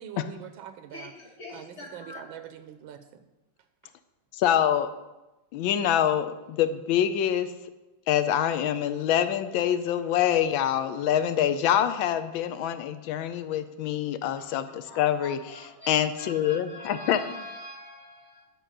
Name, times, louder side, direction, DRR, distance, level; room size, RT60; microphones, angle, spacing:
voice 1, 0.0-1.1 1.5-3.2, right 9 dB, 80° right, 9 dB, 1.4 m, -43 dB
voice 2, 0.9-2.3 14.3-18.5, left 1 dB, 35° left, 0 dB, 1.5 m, -44 dB
voice 3, 4.3-4.9 5.5-7.5 8.1-15.4 15.9-17.2, left 10 dB, 80° left, 11 dB, 1.3 m, -25 dB
10.0 x 4.7 x 6.5 m, 1.0 s
omnidirectional pair, 2.2 m